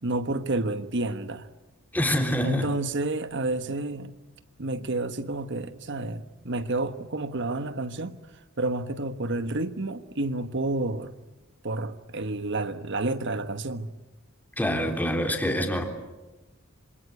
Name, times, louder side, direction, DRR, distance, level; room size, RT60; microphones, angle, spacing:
voice 1, 0.0-1.5 2.4-4.1 4.6-8.2 8.6-11.1 11.6-13.9, right 2 dB, 55° right, 1.3 m, -30 dB
voice 2, 1.9-2.7 14.6-15.8, equal, 10° left, 3.3 m, -25 dB
26.5 x 25.5 x 8.3 m
head